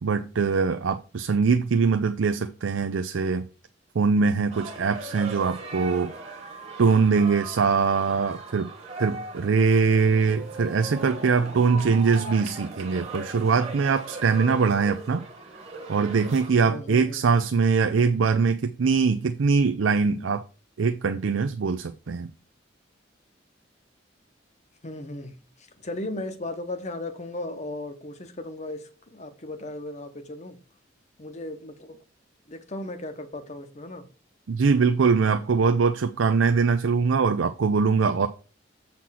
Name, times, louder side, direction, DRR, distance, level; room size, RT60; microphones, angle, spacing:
voice 1, 0.0-3.5 4.0-6.1 6.8-8.7 9.0-15.2 15.9-20.4 20.8-22.3 34.5-38.3, right 5 dB, 90° right, 0.5 m, -22 dB
sound 1, 4.5-16.5, right 2 dB, 35° right, 1.3 m, -39 dB
voice 2, 16.6-17.2 24.8-30.6 31.2-32.0 32.5-34.1, left 2 dB, 35° left, 0.9 m, -36 dB
7.5 x 4.3 x 5.7 m
head